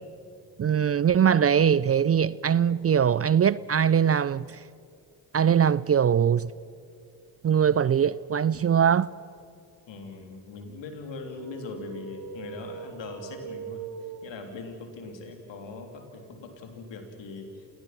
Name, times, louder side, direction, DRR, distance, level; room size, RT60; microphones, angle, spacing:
voice 1, 0.6-4.6 5.3-6.5 7.4-9.1, right 8 dB, 35° right, 0.4 m, -22 dB
voice 2, 9.9-13.8 14.2-17.5, left 3 dB, 70° left, 3.5 m, -40 dB
sound 1, 11.3-14.9, right 7 dB, 50° right, 1.2 m, -42 dB
27.5 x 18.5 x 6.0 m
supercardioid pair, 50°, 46 cm